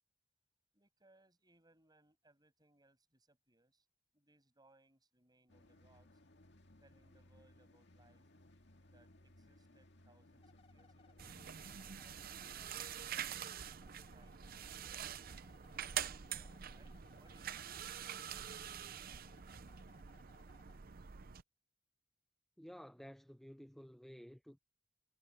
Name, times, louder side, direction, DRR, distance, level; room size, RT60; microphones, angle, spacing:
voice 1, 0.7-3.9 4.1-6.2 6.8-8.3 8.9-11.2 16.1-17.7, right 2 dB, 20° right, 7.1 m, -71 dB
sound 1, 5.5-12.2, left 1 dB, 65° left, 2.1 m, -64 dB
sound 2, 10.4-20.8, left 4 dB, 30° left, 3.2 m, -68 dB
sound 3, 11.2-21.4, right 9 dB, 50° right, 0.6 m, -46 dB
voice 2, 22.6-24.6, equal, ahead, 0.4 m, -53 dB
head